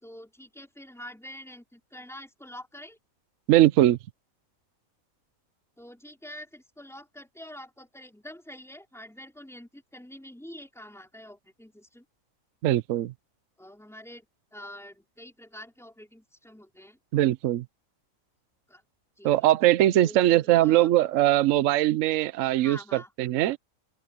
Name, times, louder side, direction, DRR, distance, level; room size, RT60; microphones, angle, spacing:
voice 1, 0.0-3.0 5.8-12.0 13.6-14.3 14.5-17.0 18.7-18.8 19.2-19.3 20.0-20.9 22.6-23.1, left 1 dB, ahead, 3.9 m, -46 dB
voice 2, 3.5-4.0 12.6-13.1 17.1-17.6 19.2-23.6, right 14 dB, 70° right, 0.9 m, -21 dB
omnidirectional pair, 1.5 m